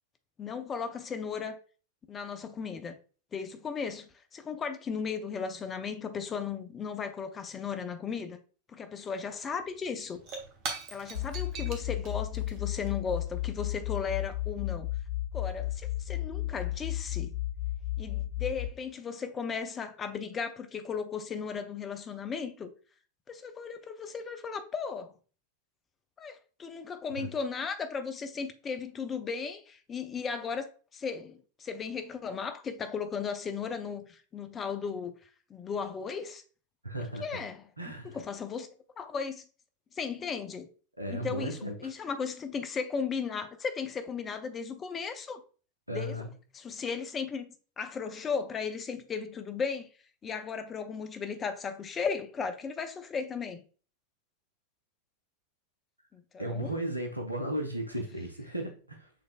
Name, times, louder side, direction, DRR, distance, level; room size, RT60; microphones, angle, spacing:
voice 1, 0.4-1.6 2.1-3.0 3.3-8.4 8.7-10.2 10.9-14.9 15.3-17.3 18.0-22.7 23.3-25.1 26.2-30.7 30.9-35.1 35.5-36.4 37.2-38.7 39.0-39.5 39.9-40.7 41.1-45.4 45.9-46.1 46.5-47.5 47.8-49.9 50.2-53.6 56.1-56.8, left 6 dB, 20° left, 0.5 m, -36 dB
Shatter / Crushing, 9.3-9.4 9.6-14.5, right 4 dB, 40° right, 1.0 m, -44 dB
sound 1, 11.1-18.7, left 14 dB, 70° left, 0.5 m, -34 dB
voice 2, 36.8-37.4 37.8-38.2 40.9-41.9 45.9-46.3 56.4-59.1, right 1 dB, 90° right, 0.7 m, -35 dB
6.6 x 3.2 x 2.2 m
figure-of-eight pair, 90°, 0 cm